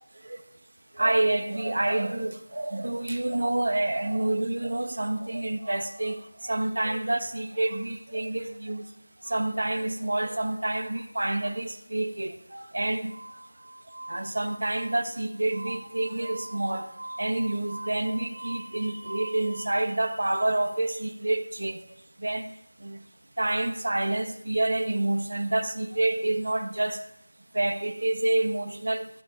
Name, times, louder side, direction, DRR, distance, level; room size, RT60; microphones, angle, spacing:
voice 1, 0.9-8.8 9.2-13.2 14.1-16.9 17.2-21.8 22.2-22.5 22.8-23.0 23.4-27.0 27.5-29.1, right 2 dB, 65° right, 1.1 m, -28 dB
Glass, 13.1-19.8, right 1 dB, 45° right, 1.0 m, -43 dB
15.0 x 15.0 x 2.4 m
figure-of-eight pair, 175°, 0 cm